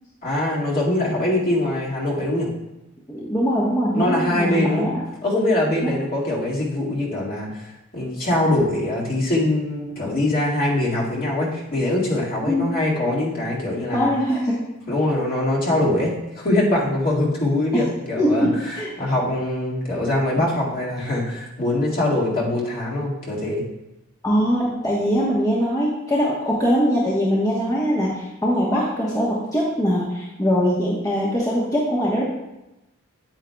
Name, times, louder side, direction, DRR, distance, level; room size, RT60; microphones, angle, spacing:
voice 1, 0.2-2.5 3.9-4.9 5.2-7.6 7.9-14.1 14.9-23.6, left 1 dB, 45° left, -5 dB, 2.0 m, -23 dB
voice 2, 3.1-4.9 12.5-12.7 13.9-14.5 17.7-17.9 18.2-18.9 24.2-32.2, equal, 15° left, -6 dB, 1.1 m, -22 dB
9.1 x 9.0 x 2.3 m, 0.94 s
head